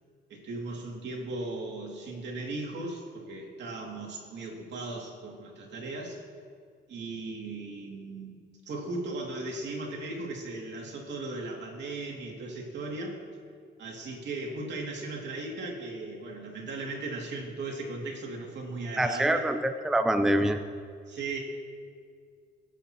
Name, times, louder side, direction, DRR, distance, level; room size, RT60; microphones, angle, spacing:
voice 1, 0.3-6.2 6.9-8.4 8.7-13.2 13.8-19.4 21.1-21.4, right 2 dB, 60° right, 0 dB, 2.5 m, -37 dB
voice 2, 19.0-20.6, right 1 dB, ahead, 8 dB, 0.5 m, -25 dB
22.0 x 8.3 x 3.0 m, 2.1 s
cardioid pair, 90°, 20 cm